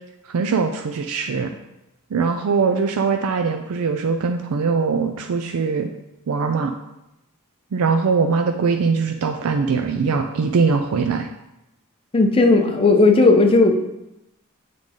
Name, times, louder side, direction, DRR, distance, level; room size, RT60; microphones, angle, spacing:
voice 1, 0.3-1.5 2.1-5.9 6.3-6.7 7.7-11.3, right 5 dB, 80° right, 5 dB, 0.4 m, -21 dB
voice 2, 12.1-13.7, left 3 dB, 25° left, 4 dB, 0.5 m, -15 dB
7.3 x 3.8 x 3.7 m, 0.90 s
head